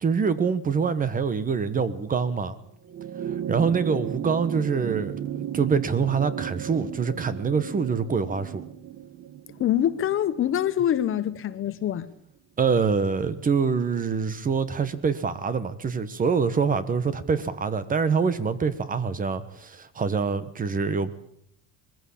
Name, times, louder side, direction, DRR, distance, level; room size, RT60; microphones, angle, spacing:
voice 1, 0.0-2.6 3.5-8.6 12.6-21.1, right 5 dB, 25° right, 1.2 m, -25 dB
sound 1, 2.8-11.5 12.8-12.9, right 10 dB, 45° right, 1.2 m, -35 dB
voice 2, 9.6-12.1, left 11 dB, 40° left, 0.9 m, -25 dB
21.5 x 15.5 x 8.4 m
cardioid pair, 150°, 33 cm